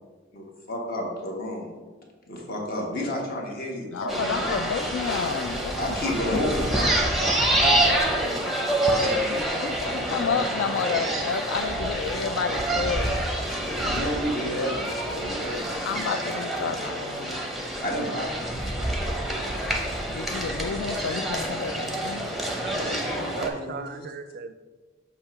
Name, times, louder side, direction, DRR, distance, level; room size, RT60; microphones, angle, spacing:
voice 1, 0.3-1.7 2.3-4.5 5.4-8.5 8.9-11.1 13.6-16.0 17.8-18.5 22.6-23.9, left 1 dB, 50° left, 0 dB, 1.3 m, -32 dB
voice 2, 3.9-5.8 6.0-6.5 9.6-13.2 15.8-17.4 20.1-22.3, left 6 dB, 75° left, 9 dB, 0.3 m, -30 dB
sound 1, 4.1-23.5, right 1 dB, ahead, 0.7 m, -27 dB
voice 3, 22.5-24.5, right 5 dB, 50° right, 10 dB, 0.4 m, -38 dB
6.6 x 2.9 x 5.7 m, 1.3 s
head